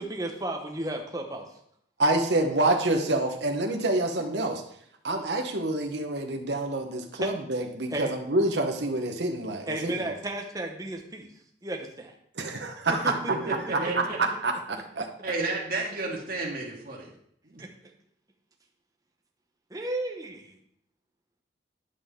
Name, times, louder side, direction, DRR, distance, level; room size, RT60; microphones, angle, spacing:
voice 1, 0.0-1.5 7.2-7.3 7.9-8.1 9.7-11.3 11.6-12.1 12.9-13.5 13.8-14.2 17.6-17.9 19.7-20.6, right 1 dB, 20° right, 2 dB, 0.9 m, -34 dB
voice 2, 2.0-4.6 5.0-9.9 12.3-13.1 14.0-15.1, right 2 dB, 70° right, 3 dB, 1.1 m, -27 dB
voice 3, 13.3-14.2 15.2-17.1 17.4-17.6, right 2 dB, 50° right, -2 dB, 1.9 m, -32 dB
10.5 x 5.4 x 3.7 m, 0.69 s
head